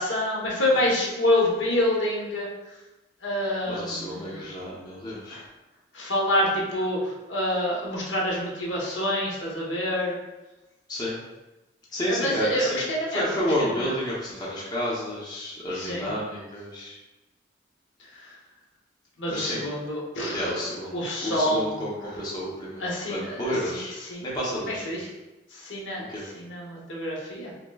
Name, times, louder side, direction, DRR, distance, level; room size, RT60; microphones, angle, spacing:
voice 1, 0.0-2.5 3.2-4.5 5.3-5.4 5.9-10.2 12.1-13.9 15.7-16.1 18.1-18.3 19.2-20.6 20.9-21.8 22.8-24.2 24.6-25.1 25.5-27.5, left 1 dB, 75° left, -4 dB, 1.0 m, -27 dB
voice 2, 3.6-5.4 10.9-11.1 11.9-12.8 13.1-17.0 19.2-19.7 20.3-20.9 21.2-22.8 23.1-23.9 24.2-24.8 26.1-26.2, equal, 20° left, -7 dB, 0.7 m, -30 dB
5.8 x 2.1 x 2.3 m, 1.0 s
head